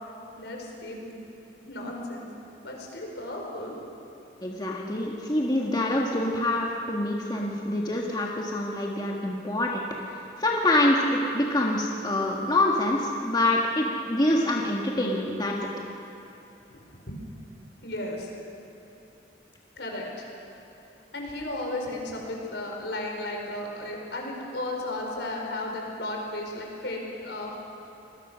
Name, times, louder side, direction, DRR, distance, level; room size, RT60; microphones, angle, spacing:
voice 1, 0.0-1.1 1.6-2.3 2.6-3.8 16.7-17.2 17.8-18.3 19.8-20.3 21.1-27.5, left 1 dB, 75° left, 0 dB, 5.0 m, -34 dB
voice 2, 4.4-9.8 10.1-15.6, left 1 dB, 25° left, -2 dB, 1.8 m, -26 dB
26.5 x 20.5 x 6.4 m, 2.8 s
head